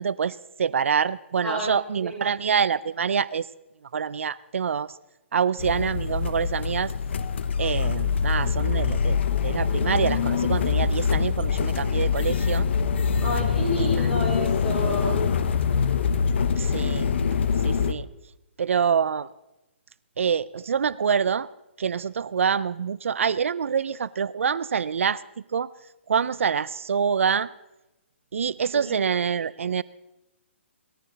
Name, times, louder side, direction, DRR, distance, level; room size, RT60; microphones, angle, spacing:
voice 1, 0.0-3.4 3.9-4.9 5.3-6.9 7.6-9.2 9.4-12.7 13.8-14.1 16.6-17.1 17.6-18.1 18.6-19.3 20.2-21.5 21.8-25.2 25.5-25.7 26.1-27.5 28.3-29.8, right 7 dB, 80° right, 19 dB, 0.5 m, -26 dB
voice 2, 1.4-2.3 13.2-15.2 28.7-29.1, equal, 10° left, -4 dB, 4.5 m, -31 dB
sound 1, 5.6-17.9, left 6 dB, 60° left, 1.0 m, -24 dB
19.0 x 14.5 x 4.0 m, 0.95 s
hypercardioid pair, 155°, 7 cm